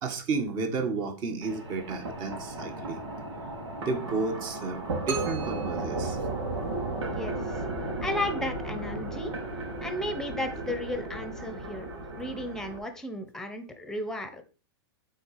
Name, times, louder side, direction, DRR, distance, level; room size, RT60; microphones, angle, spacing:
voice 1, 0.0-3.0 3.8-6.2 8.0-8.1 10.7-10.8, right 4 dB, 30° right, 7 dB, 1.5 m, -32 dB
sound 1, 1.4-12.8, right 2 dB, 90° right, 2.9 m, -35 dB
sound 2, 5.1-7.0, right 3 dB, 50° right, 2.2 m, -38 dB
voice 2, 7.1-7.4 8.0-9.3 9.8-11.9 12.1-14.4, left 1 dB, 5° left, 8 dB, 1.0 m, -34 dB
8.5 x 4.0 x 4.9 m, 0.35 s
hypercardioid pair, 145°, 14 cm